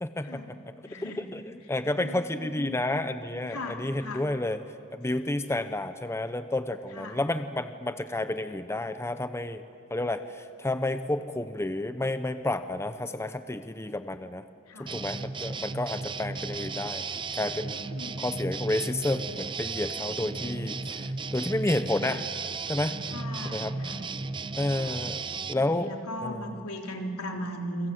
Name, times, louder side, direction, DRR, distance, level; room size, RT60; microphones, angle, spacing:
voice 1, 0.0-0.7 1.0-4.6 4.9-9.6 9.9-14.4 14.8-17.0 17.3-17.8 18.2-22.2 22.7-23.0 23.4-23.7 24.6-25.2 25.5-25.9 26.2-26.6, left 1 dB, 10° left, 10 dB, 0.7 m, -30 dB
voice 2, 0.9-1.2 2.0-3.0 3.5-4.2 6.9-7.2 14.7-14.9 17.9-18.2 23.1-24.0 24.7-25.0 25.5-27.9, left 1 dB, 80° left, 2 dB, 3.5 m, -38 dB
sound 1, 14.9-25.5, right 4 dB, 20° right, 0.6 m, -35 dB
28.5 x 23.5 x 7.8 m, 2.5 s
head